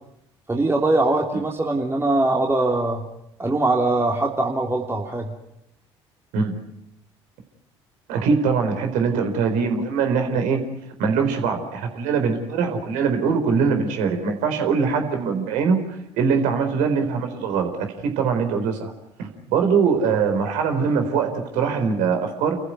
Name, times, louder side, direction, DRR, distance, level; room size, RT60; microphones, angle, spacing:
voice 1, 0.5-3.0 3.4-5.3, right 2 dB, 15° right, 1 dB, 3.2 m, -22 dB
voice 2, 8.1-10.6 11.0-15.8 16.2-18.9 19.2-22.6, right 5 dB, 65° right, 6 dB, 4.3 m, -22 dB
29.5 x 15.0 x 9.6 m, 0.79 s
hypercardioid pair, 55°, 14 cm